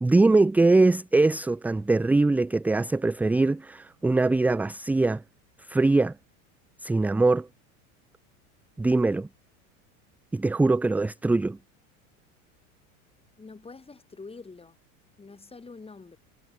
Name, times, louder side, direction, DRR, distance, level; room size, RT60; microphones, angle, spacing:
voice 1, 0.0-5.2 5.6-6.2 6.8-7.5 8.8-9.3 10.3-11.6, right 3 dB, 5° right, 0.4 m, -22 dB
voice 2, 13.4-14.8 15.2-16.2, left 4 dB, 15° left, 5.2 m, -45 dB
supercardioid pair, 115°, 41 cm